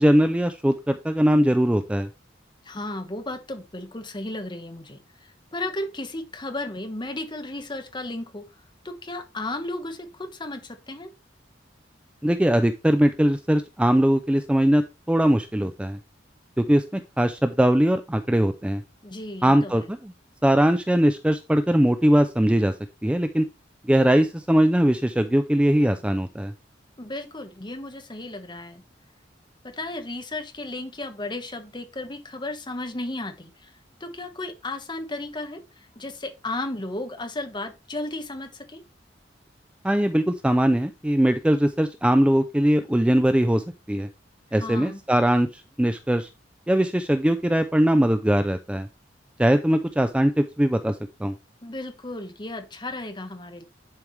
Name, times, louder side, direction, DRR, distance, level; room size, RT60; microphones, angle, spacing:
voice 1, 0.0-2.1 12.2-16.0 16.6-18.8 19.4-20.1 20.4-22.7 23.0-23.5 23.9-26.5 39.8-44.1 44.5-46.3 46.7-48.9 49.4-51.3, equal, 5° right, 0.4 m, -21 dB
voice 2, 2.6-5.0 5.5-8.4 8.8-11.1 19.0-19.9 27.0-28.8 29.6-33.7 34.0-38.8 44.6-45.0 51.6-53.6, left 2 dB, 25° left, 1.2 m, -34 dB
10.5 x 4.7 x 3.3 m
head